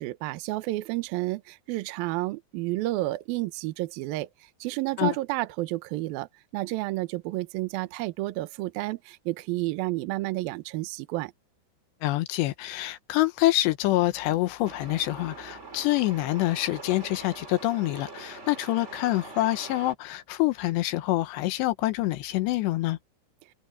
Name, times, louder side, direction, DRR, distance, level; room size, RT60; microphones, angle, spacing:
voice 1, 0.0-4.3 4.6-11.3, right 19 dB, 70° right, 2.4 m, -31 dB
voice 2, 12.0-23.0, left 17 dB, 80° left, 3.2 m, -26 dB
Truck, 14.6-19.9, right 3 dB, 20° right, 2.4 m, -43 dB
omnidirectional pair, 4.9 m